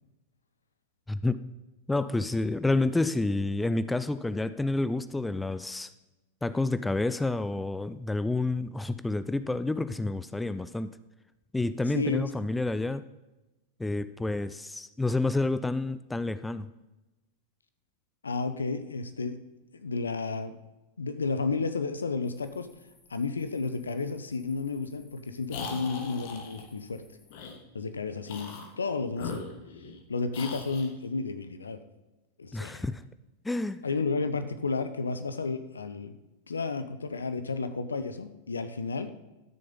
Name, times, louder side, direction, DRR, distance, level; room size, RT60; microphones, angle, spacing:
voice 1, 1.1-1.4 1.9-5.9 6.4-10.9 11.5-13.0 13.8-16.7 32.5-33.0 33.4-33.9, left 2 dB, 5° left, 14 dB, 0.4 m, -29 dB
voice 2, 11.9-12.3 18.2-19.4 19.7-20.6 21.0-22.7 23.1-27.0 27.7-29.4 30.1-31.8 32.4-32.9 33.8-36.2 36.5-39.1, left 4 dB, 75° left, 11 dB, 0.8 m, -32 dB
sound 1, 22.2-27.4, left 4 dB, 35° left, 2.6 m, -62 dB
sound 2, 25.5-26.6 27.3-27.6 28.2-28.7 29.1-30.0 30.3-30.9, left 4 dB, 50° left, 1.6 m, -39 dB
12.5 x 6.7 x 5.4 m, 1.0 s
figure-of-eight pair, 90°, 0 cm